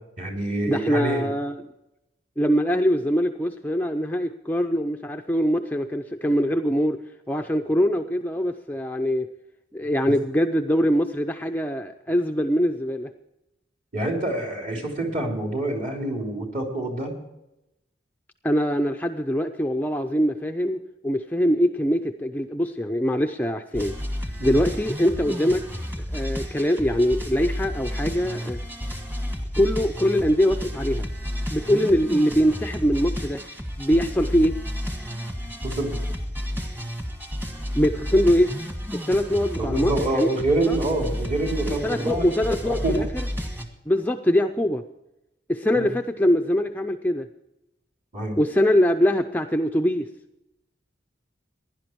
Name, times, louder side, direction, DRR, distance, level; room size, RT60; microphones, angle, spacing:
voice 1, 0.2-1.3 13.9-17.1 24.4-24.6 35.6-36.0 39.6-42.3 42.6-43.0 45.7-45.9 48.1-48.4, right 2 dB, 40° right, 1 dB, 3.3 m, -26 dB
voice 2, 0.7-1.7 2.4-7.0 7.3-9.3 9.7-13.1 18.4-23.9 24.4-25.6 26.1-28.6 29.6-31.1 31.5-33.4 33.8-34.6 37.7-38.5 38.9-40.3 40.7-40.8 41.8-43.1 43.9-44.8 45.5-47.3 48.4-50.1, equal, 10° left, 5 dB, 0.5 m, -23 dB
sound 1, 23.7-43.6, equal, 10° right, 1.5 m, -31 dB
16.5 x 11.0 x 4.6 m, 0.88 s
head